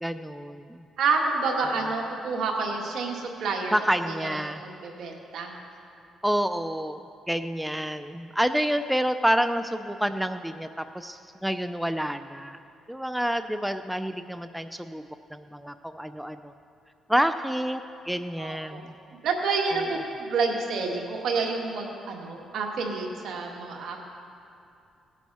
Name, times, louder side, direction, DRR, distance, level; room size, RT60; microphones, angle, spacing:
voice 1, 0.0-0.9 3.7-4.6 6.2-7.0 7.3-12.6 12.9-15.0 15.3-16.5 17.1-17.8 18.1-18.9 19.7-19.8, equal, ahead, 9 dB, 0.4 m, -28 dB
voice 2, 1.0-3.7 4.1-5.6 18.4-18.8 19.2-24.0, right 4 dB, 70° right, 1 dB, 1.8 m, -29 dB
17.5 x 9.2 x 4.2 m, 2.6 s
cardioid pair, 90°, 0 cm